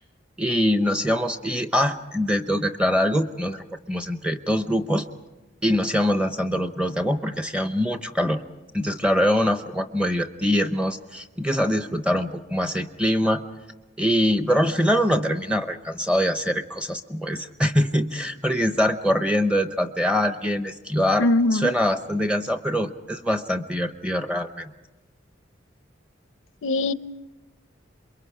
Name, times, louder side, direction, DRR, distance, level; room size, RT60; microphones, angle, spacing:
voice 1, 0.4-5.1 5.6-8.4 8.7-13.4 14.0-24.7, equal, 5° right, 7 dB, 0.8 m, -23 dB
voice 2, 21.2-21.7 26.6-26.9, left 2 dB, 85° left, 15 dB, 0.6 m, -21 dB
27.5 x 23.0 x 4.9 m, 1.1 s
head